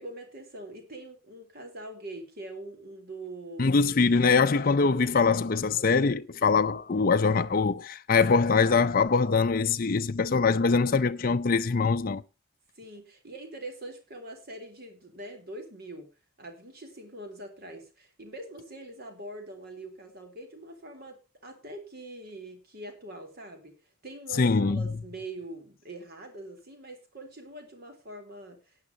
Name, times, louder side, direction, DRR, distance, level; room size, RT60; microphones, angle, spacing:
voice 1, 0.0-3.8 12.8-16.1 16.4-23.8 24.0-28.8, right 2 dB, 45° right, 3.5 m, -43 dB
voice 2, 3.6-12.2 24.3-24.9, left 4 dB, 40° left, 0.5 m, -23 dB
18.5 x 9.8 x 2.8 m
head